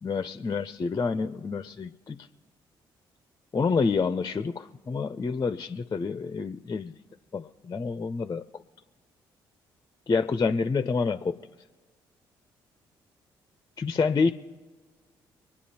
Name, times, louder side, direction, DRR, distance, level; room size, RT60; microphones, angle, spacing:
voice 1, 0.0-2.3 3.5-6.9 7.3-8.4 10.1-11.4 13.8-14.3, left 4 dB, 30° left, 10 dB, 0.6 m, -28 dB
25.0 x 9.9 x 4.3 m, 1.3 s
hypercardioid pair, 45°, 11 cm